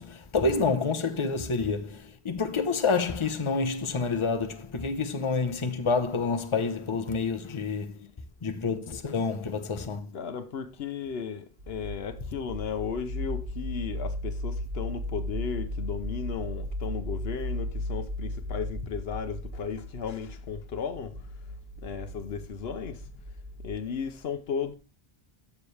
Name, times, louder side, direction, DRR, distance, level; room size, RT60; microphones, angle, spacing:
voice 1, 0.0-8.0 8.4-10.1, left 4 dB, 30° left, 0.9 m, -28 dB
voice 2, 10.1-21.2 21.8-23.1 23.6-24.7, left 6 dB, 70° left, 1.0 m, -35 dB
sound 1, 11.6-23.7, left 1 dB, 60° right, 3.0 m, -36 dB
11.5 x 7.1 x 3.3 m
omnidirectional pair, 1.1 m